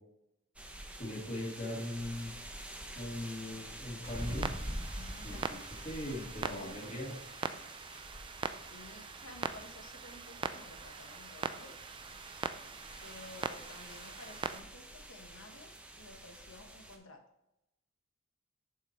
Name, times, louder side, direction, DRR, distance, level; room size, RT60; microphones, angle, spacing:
sound 1, 0.6-17.0, equal, 5° right, 0.7 m, -47 dB
voice 1, 1.0-2.3 2.9-4.5 5.2-5.6 5.8-7.1, left 1 dB, 30° left, -2 dB, 2.4 m, -40 dB
Clock, 4.0-14.6, right 5 dB, 25° right, 0.4 m, -42 dB
voice 2, 4.9-5.6 6.4-6.9 7.5-7.6 8.7-11.8 13.0-15.7 16.0-17.2, left 2 dB, 65° left, 5 dB, 1.2 m, -53 dB
7.2 x 5.4 x 4.3 m, 0.89 s
head